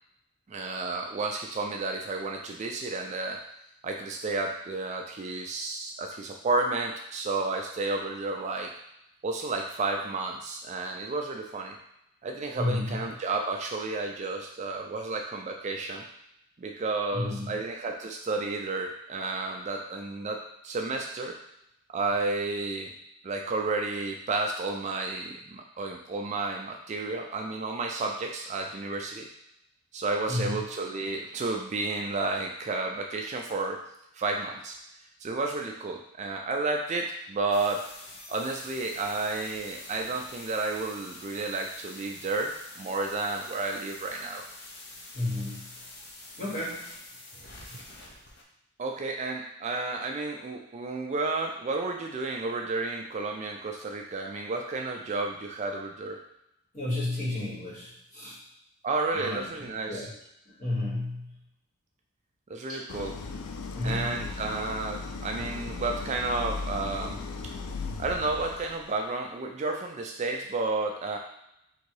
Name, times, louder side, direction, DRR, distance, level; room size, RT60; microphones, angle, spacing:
voice 1, 0.5-3.4 3.8-8.7 9.2-11.8 12.2-16.0 16.6-21.4 21.9-22.9 23.2-29.3 29.9-33.8 34.1-34.8 35.2-37.9 38.3-44.4 47.7-47.8 48.8-56.2 58.8-60.1 62.5-63.1 63.8-67.2 68.0-71.2, right 3 dB, 30° right, 2 dB, 0.3 m, -31 dB
voice 2, 12.5-13.0 17.1-17.6 30.3-30.6 45.1-45.7 46.4-46.9 56.7-58.4 59.1-60.1 60.6-61.3 63.7-64.1, left 2 dB, 35° left, -6 dB, 1.6 m, -32 dB
sound 1, 37.5-48.4, left 2 dB, 50° left, 0.8 m, -46 dB
Idling, 62.9-69.0, left 4 dB, 90° left, 0.4 m, -37 dB
3.8 x 2.7 x 4.6 m, 0.81 s
head